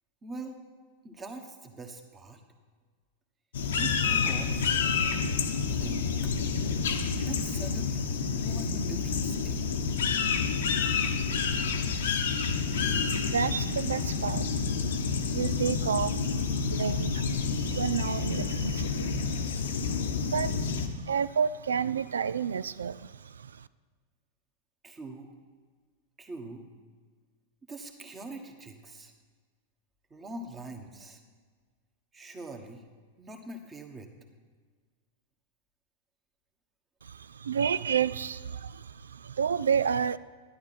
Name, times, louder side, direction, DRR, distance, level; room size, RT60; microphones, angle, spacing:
voice 1, 0.2-0.6 1.0-2.4 3.8-4.7 5.4-6.3 7.3-9.7 24.8-25.3 26.2-26.7 27.7-29.1 30.1-31.2 32.1-32.8 33.2-34.1, right 2 dB, 20° right, 5 dB, 1.4 m, -43 dB
sound 1, 3.5-20.9, left 5 dB, 70° left, 0.9 m, -29 dB
voice 2, 12.8-20.7 21.0-23.5 37.0-40.2, right 7 dB, 75° right, 18 dB, 0.3 m, -31 dB
11.5 x 10.5 x 4.3 m, 1.5 s
figure-of-eight pair, 95°, 0 cm